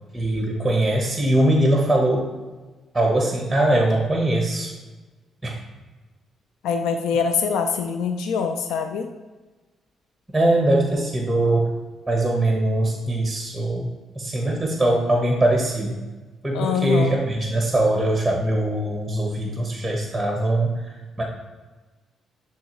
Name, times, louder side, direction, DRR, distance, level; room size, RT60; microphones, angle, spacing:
voice 1, 0.1-2.3 2.9-4.7 5.4-5.5 10.3-11.7 12.1-13.9 14.1-16.0 16.4-20.8 21.2-21.3, right 1 dB, 10° right, 0 dB, 1.2 m, -21 dB
voice 2, 6.6-9.1 16.5-17.2, left 6 dB, 85° left, 6 dB, 0.4 m, -24 dB
9.5 x 3.5 x 3.1 m, 1.3 s
cardioid pair, 90°, 0 cm